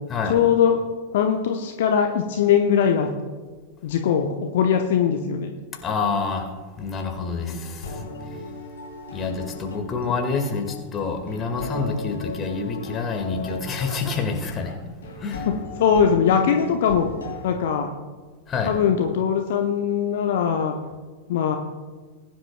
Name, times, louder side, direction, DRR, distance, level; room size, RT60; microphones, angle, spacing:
voice 1, 0.3-0.8 1.1-3.1 3.8-5.5 15.8-17.1 17.4-17.9 18.7-20.7 21.3-21.6, left 8 dB, 55° left, 4 dB, 0.8 m, -21 dB
voice 2, 5.8-6.5 6.8-8.0 9.1-14.7 15.2-15.5 16.3-16.4 18.5-18.7, left 4 dB, 25° left, 3 dB, 2.0 m, -27 dB
sound 1, 7.3-17.5, left 3 dB, 70° left, 3.3 m, -37 dB
21.0 x 10.0 x 2.3 m, 1.4 s
figure-of-eight pair, 90°, 0 cm